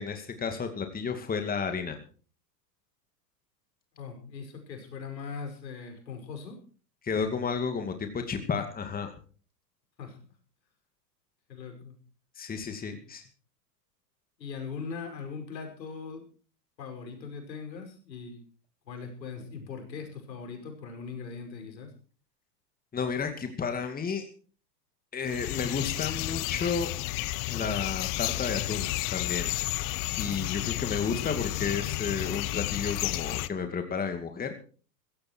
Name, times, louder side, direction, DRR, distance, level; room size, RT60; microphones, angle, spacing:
voice 1, 0.0-2.0 7.0-9.1 12.4-13.2 22.9-24.2 25.1-26.9 27.5-29.5 30.2-34.5, left 5 dB, 15° left, 6 dB, 2.3 m, -32 dB
voice 2, 4.0-6.6 10.0-10.2 11.5-12.0 12.9-13.0 14.4-16.3 16.8-18.4 18.9-21.9 31.2-31.3, left 5 dB, 85° left, 5 dB, 5.6 m, -40 dB
sound 1, 25.3-33.5, left 17 dB, 40° left, 1.0 m, -32 dB
15.5 x 15.0 x 4.5 m, 0.40 s
hypercardioid pair, 105°, 50 cm